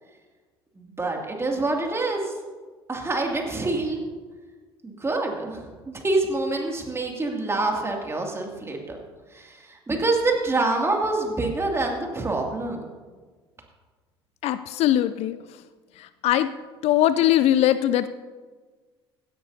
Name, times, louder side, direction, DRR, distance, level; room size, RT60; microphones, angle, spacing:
voice 1, 0.8-2.3 2.9-4.0 4.8-9.0 9.3-12.8, right 2 dB, 20° right, 1 dB, 2.4 m, -26 dB
voice 2, 14.4-15.4 16.0-16.5 16.8-18.1, left 12 dB, 55° left, 14 dB, 0.4 m, -21 dB
16.5 x 10.5 x 2.7 m, 1.4 s
hypercardioid pair, 60°, 13 cm